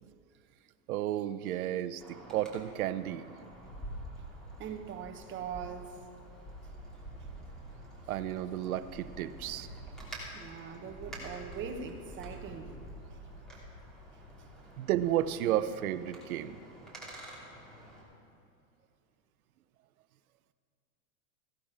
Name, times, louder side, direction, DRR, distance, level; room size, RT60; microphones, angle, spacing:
voice 1, 0.9-3.3 8.1-9.7 14.8-16.6, right 12 dB, 75° right, 13 dB, 0.8 m, -32 dB
Wind, 2.0-18.0, right 1 dB, ahead, 3.1 m, -47 dB
voice 2, 4.6-6.0 9.6-9.7 10.2-12.8 14.3-14.4, right 7 dB, 25° right, 6 dB, 1.1 m, -41 dB
16.0 x 11.5 x 4.9 m, 2.6 s
hypercardioid pair, 130°, 43 cm